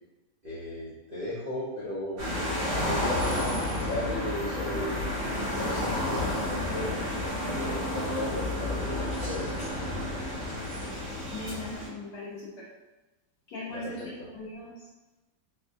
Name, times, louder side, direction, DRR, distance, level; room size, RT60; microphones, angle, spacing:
voice 1, 0.4-2.2 2.7-6.9 7.3-9.6 13.7-14.3, left 1 dB, 60° right, -9 dB, 0.5 m, -36 dB
sound 1, 2.2-11.9, left 1 dB, 80° right, 2.1 m, -31 dB
Gunshot gunfire, 3.8-11.6, left 2 dB, 25° left, 0.6 m, -45 dB
voice 2, 11.3-12.7 13.5-14.7, left 2 dB, 70° left, -5 dB, 1.0 m, -39 dB
4.2 x 2.2 x 2.6 m, 1.1 s
omnidirectional pair, 2.1 m